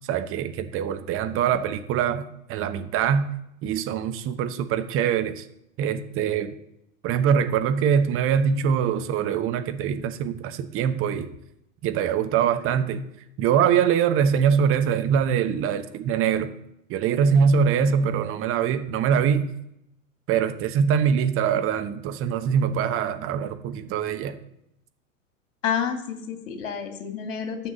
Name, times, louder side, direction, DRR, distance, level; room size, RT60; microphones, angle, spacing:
voice 1, 0.1-3.3 3.6-5.4 5.8-6.5 7.0-11.3 11.8-13.0 13.4-16.5 16.9-19.5 20.3-24.4, right 7 dB, 30° right, 9 dB, 1.0 m, -23 dB
voice 2, 25.6-27.7, left 7 dB, 60° left, 7 dB, 2.3 m, -29 dB
9.7 x 6.8 x 8.5 m, 0.80 s
figure-of-eight pair, 90°, 42 cm